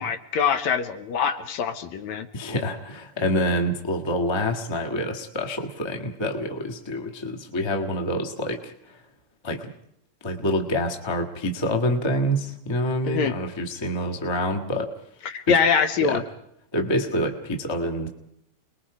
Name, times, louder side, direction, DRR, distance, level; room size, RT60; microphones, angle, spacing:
voice 1, 0.0-2.3 13.0-13.3 15.3-16.2, left 6 dB, 70° left, 9 dB, 2.2 m, -23 dB
voice 2, 2.3-9.0 9.4-9.7 10.2-14.9 15.5-15.6 16.0-16.2 16.7-18.1, equal, 20° left, 3 dB, 0.6 m, -27 dB
29.5 x 21.0 x 4.9 m, 0.74 s
omnidirectional pair, 3.6 m